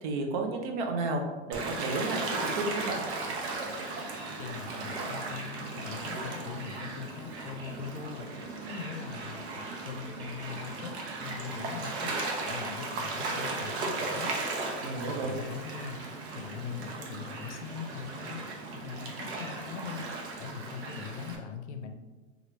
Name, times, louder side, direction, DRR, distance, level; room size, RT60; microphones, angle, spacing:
voice 1, 0.0-3.0 14.8-15.4, right 2 dB, 45° right, 3 dB, 0.5 m, -32 dB
Gull seagull / Waves surf, 1.5-21.4, right 3 dB, 70° right, 0.8 m, -36 dB
voice 2, 4.4-8.3 8.7-12.1 12.4-14.3 15.1-18.4 18.8-20.1 20.4-21.9, left 6 dB, 80° left, 6 dB, 0.6 m, -41 dB
2.9 x 2.4 x 3.1 m, 1.2 s
supercardioid pair, 160°, 34 cm